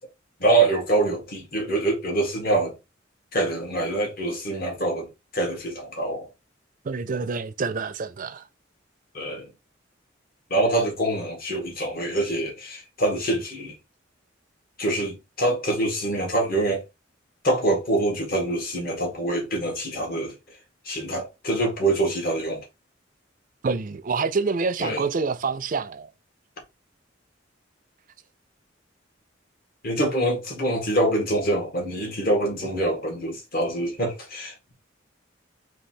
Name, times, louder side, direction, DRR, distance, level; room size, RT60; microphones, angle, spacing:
voice 1, 0.4-2.7 3.3-6.3 9.1-9.5 10.5-13.8 14.8-16.8 17.4-20.6 20.8-22.6 24.8-25.0 29.8-34.7, right 2 dB, 50° left, 1.5 m, -25 dB
voice 2, 6.8-8.5 23.6-26.1, right 4 dB, 45° right, 0.4 m, -27 dB
3.2 x 3.1 x 4.4 m
head